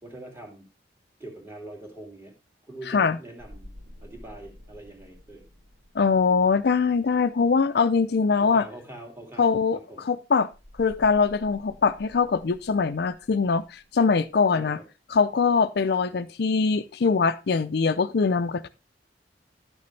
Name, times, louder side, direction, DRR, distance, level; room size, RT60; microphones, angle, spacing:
voice 1, 0.0-0.7 1.2-2.3 2.6-3.7 4.0-5.5 8.4-10.0 14.5-14.8, right 1 dB, 15° right, 2.4 m, -43 dB
voice 2, 2.9-3.2 5.9-8.7 9.4-9.8 10.1-10.5 10.8-14.8 15.1-18.7, left 5 dB, 65° left, 0.5 m, -22 dB
sound 1, 3.4-7.8 10.5-14.7, equal, 75° right, 2.9 m, -50 dB
11.0 x 6.8 x 3.3 m
head